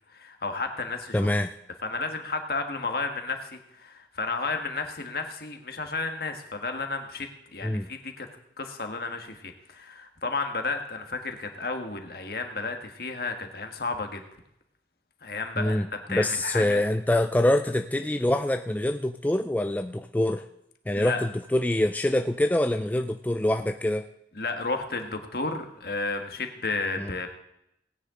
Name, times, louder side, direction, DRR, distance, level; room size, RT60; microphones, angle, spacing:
voice 1, 0.1-1.3 1.8-8.3 8.6-14.2 15.2-16.8 20.9-21.3 24.3-27.3, left 3 dB, 55° left, 5 dB, 1.5 m, -32 dB
voice 2, 1.1-1.5 7.6-7.9 15.6-20.5 20.9-24.1 27.0-27.1, left 1 dB, 10° left, 7 dB, 0.3 m, -25 dB
18.0 x 9.8 x 3.8 m, 0.80 s
head